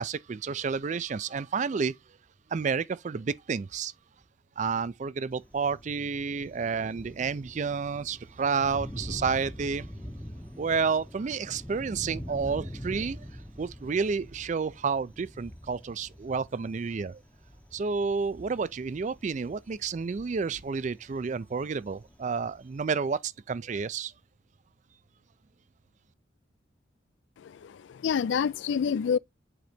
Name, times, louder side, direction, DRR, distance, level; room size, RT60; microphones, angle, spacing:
voice 1, 0.0-1.9 2.5-3.9 4.6-9.9 10.6-13.2 13.6-17.2 17.7-24.1, right 5 dB, 40° right, 0.4 m, -30 dB
Thunder, 5.3-22.8, equal, 10° left, 0.7 m, -45 dB
voice 2, 27.4-29.2, left 7 dB, 70° left, 0.3 m, -28 dB
7.8 x 3.9 x 3.4 m
head